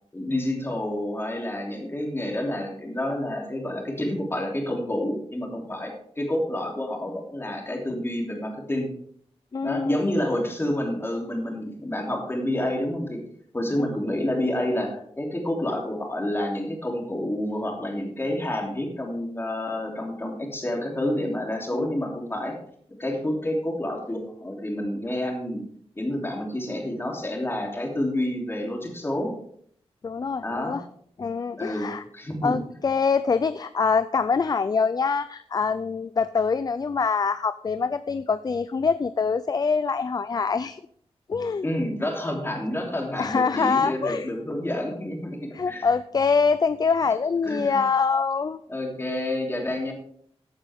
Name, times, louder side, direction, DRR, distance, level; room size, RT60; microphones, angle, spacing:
voice 1, 0.1-8.9 9.6-13.2 13.5-22.5 23.0-25.6 26.0-29.3 30.4-30.8 31.6-32.6 41.6-45.9 47.5-47.8 48.7-49.9, left 1 dB, 20° left, 0 dB, 3.1 m, -29 dB
voice 2, 9.5-10.0 13.8-13.9 21.7-21.9 30.0-30.8 31.2-32.0 32.4-40.8 41.3-41.7 43.2-44.3 45.5-48.6, left 5 dB, 40° left, 14 dB, 0.4 m, -24 dB
14.5 x 9.0 x 3.6 m, 0.64 s
wide cardioid pair, 120°, 11 cm